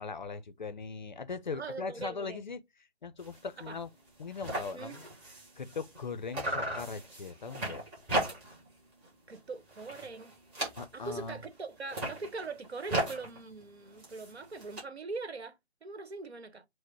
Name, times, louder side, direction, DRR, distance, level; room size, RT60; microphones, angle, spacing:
voice 1, 0.0-2.6 3.0-3.9 4.2-5.0 5.6-7.8 10.8-11.4, left 4 dB, 45° left, 0.5 m, -39 dB
voice 2, 1.5-2.4 3.6-3.8 4.7-5.0 9.3-10.3 10.9-15.6 15.8-16.7, right 3 dB, 70° right, 1.2 m, -41 dB
sound 1, 3.2-3.4 3.8-3.9 4.1-6.1 6.3-8.7 9.0-9.4 9.7-11.2 11.8-14.8, right 1 dB, 10° right, 0.9 m, -37 dB
4.9 x 2.0 x 4.5 m
figure-of-eight pair, 150°, 33 cm